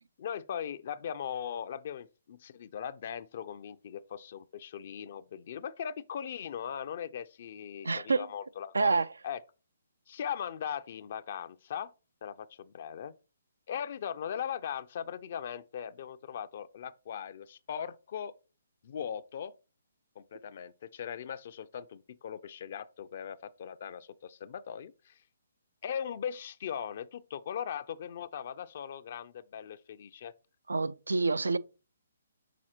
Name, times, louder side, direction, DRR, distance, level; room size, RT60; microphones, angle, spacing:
voice 1, 0.2-8.9 9.2-9.4 10.1-11.9 12.2-13.1 13.7-18.3 18.8-19.5 20.2-25.2 25.8-30.3, left 8 dB, 50° left, 0.5 m, -39 dB
voice 2, 7.8-8.3 8.7-9.1 30.7-31.6, right 4 dB, 85° right, 0.4 m, -27 dB
6.1 x 4.3 x 4.3 m
hypercardioid pair, 145°, 0 cm